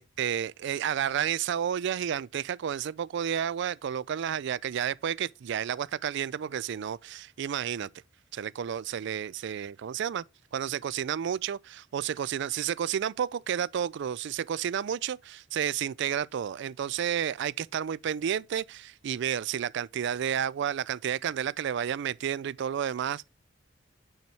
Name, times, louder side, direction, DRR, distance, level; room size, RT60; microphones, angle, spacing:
voice 1, 0.0-7.9 8.3-10.2 10.5-23.3, right 9 dB, 65° right, 0.3 m, -31 dB
9.0 x 5.6 x 3.3 m
head